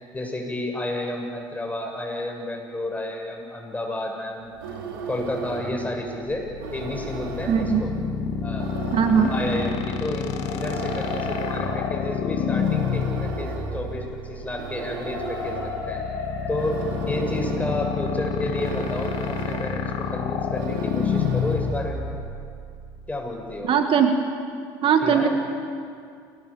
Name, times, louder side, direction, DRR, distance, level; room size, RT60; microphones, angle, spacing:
voice 1, 0.1-4.5 5.1-7.9 8.4-8.8 9.3-16.0 16.5-16.8 17.0-22.1 23.1-23.7 25.0-25.3, left 1 dB, 15° left, 1 dB, 7.2 m, -31 dB
sound 1, 4.4-21.9, right 4 dB, 80° right, 4.4 m, -36 dB
sound 2, 6.3-23.5, left 7 dB, 60° left, 2.4 m, -29 dB
voice 2, 7.5-7.8 8.9-9.3 23.6-24.1 24.8-25.3, right 7 dB, 50° right, 5 dB, 1.9 m, -19 dB
sound 3, 10.2-19.9, left 4 dB, 80° left, 4.6 m, -37 dB
29.0 x 20.0 x 7.3 m, 2.3 s
hypercardioid pair, 70°, 12 cm